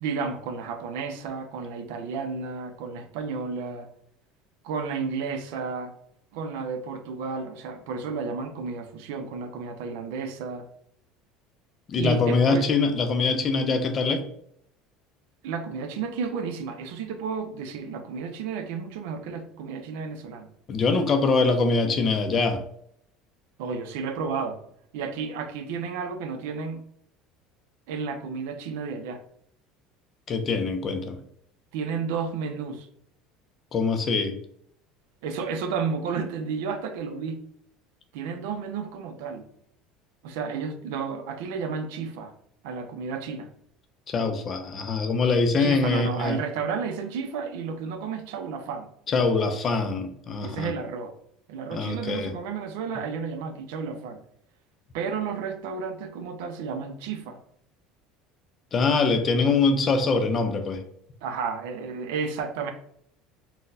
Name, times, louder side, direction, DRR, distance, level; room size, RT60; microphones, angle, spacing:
voice 1, 0.0-3.9 4.6-5.9 6.3-10.6 12.0-12.7 15.4-20.5 23.6-24.6 24.9-26.8 27.9-29.2 31.7-32.9 35.2-37.4 38.1-39.4 40.2-42.3 42.6-43.5 45.6-48.9 50.4-51.1 51.5-54.2 54.9-57.4 61.2-62.7, right 5 dB, 85° right, 7 dB, 0.5 m, -32 dB
voice 2, 11.9-14.2 20.7-22.6 30.3-31.2 33.7-34.4 44.1-46.4 49.1-50.7 51.7-52.3 58.7-60.8, left 4 dB, 30° left, 8 dB, 0.4 m, -23 dB
3.8 x 2.1 x 2.6 m, 0.70 s
cardioid pair, 140°, 0 cm